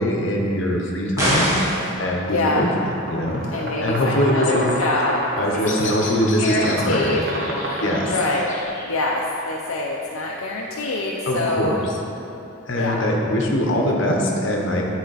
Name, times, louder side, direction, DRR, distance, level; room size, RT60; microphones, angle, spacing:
voice 1, 0.0-1.6 2.0-4.7 5.4-7.2 7.8-8.1 11.3-11.9 12.7-14.8, equal, 60° left, 0 dB, 0.9 m, -22 dB
sound 1, 1.2-1.9, equal, 15° right, 1.1 m, -21 dB
voice 2, 2.3-2.7 3.5-6.0 6.4-7.2 7.6-8.5 8.9-11.8 12.7-13.1, left 2 dB, 80° left, -2 dB, 0.5 m, -25 dB
sound 2, 2.9-8.6, equal, 45° right, 0.9 m, -29 dB
Bird vocalization bird call bird song, 5.1-11.1, left 3 dB, 35° left, 1.0 m, -38 dB
9.0 x 4.2 x 4.1 m, 3.0 s
head